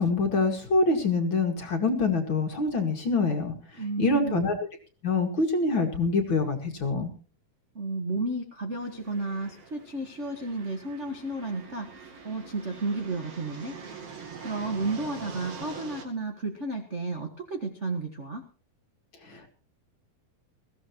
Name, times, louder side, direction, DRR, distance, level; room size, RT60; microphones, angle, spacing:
voice 1, 0.0-3.5 4.0-4.5 5.0-7.1 19.2-19.5, left 3 dB, 40° left, 4 dB, 2.3 m, -25 dB
voice 2, 3.8-4.5 7.7-11.9 12.2-13.8 14.4-18.4, right 2 dB, 75° right, 2 dB, 0.6 m, -32 dB
sound 1, 8.8-16.0, right 5 dB, 45° right, 3.1 m, -44 dB
21.5 x 15.5 x 3.0 m, 0.37 s
omnidirectional pair, 4.1 m